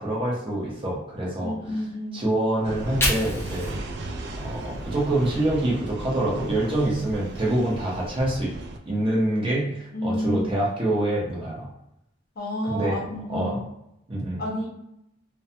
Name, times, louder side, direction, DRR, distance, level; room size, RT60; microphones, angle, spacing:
voice 1, 0.0-1.8 2.1-3.8 4.4-8.5 8.9-11.7 12.6-13.0 13.3-13.6 14.1-14.4, right 1 dB, 25° right, -5 dB, 0.7 m, -26 dB
voice 2, 1.4-2.3 9.9-10.6 12.4-13.6 14.4-14.7, equal, 50° left, -3 dB, 0.7 m, -30 dB
Fire, 2.6-5.8 6.2-8.2, left 1 dB, 10° left, 0.5 m, -34 dB
sound 1, 2.6-8.8, right 2 dB, 55° right, 0.4 m, -36 dB
2.3 x 2.2 x 2.7 m, 0.82 s
head